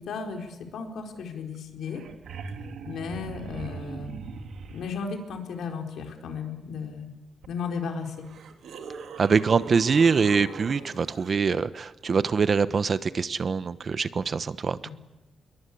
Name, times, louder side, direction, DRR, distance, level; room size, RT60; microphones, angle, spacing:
voice 1, 0.0-2.0 2.9-4.1 4.7-7.1 7.5-8.3 14.8-14.9, left 5 dB, 85° left, 3 dB, 4.2 m, -35 dB
sound 1, 1.5-1.6 1.8-4.9 7.4-7.5 8.2-11.3 13.8-13.9, right 4 dB, 80° right, 2.9 m, -40 dB
voice 2, 9.2-14.9, right 5 dB, 40° right, 14 dB, 1.0 m, -24 dB
27.5 x 22.5 x 8.5 m, 1.0 s
wide cardioid pair, 135°, 0 cm